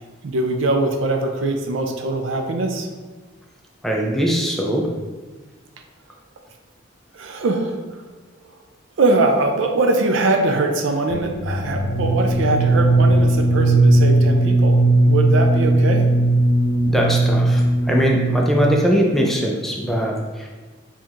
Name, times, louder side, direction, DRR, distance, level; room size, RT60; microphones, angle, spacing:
voice 1, 0.2-2.9 7.1-8.1 9.0-16.1, right 2 dB, 70° right, 4 dB, 0.4 m, -22 dB
voice 2, 3.8-4.9 16.9-20.5, equal, ahead, -1 dB, 0.4 m, -21 dB
sound 1, 11.1-18.8, right 2 dB, 75° left, 0.7 m, -17 dB
4.3 x 2.8 x 2.4 m, 1.3 s
head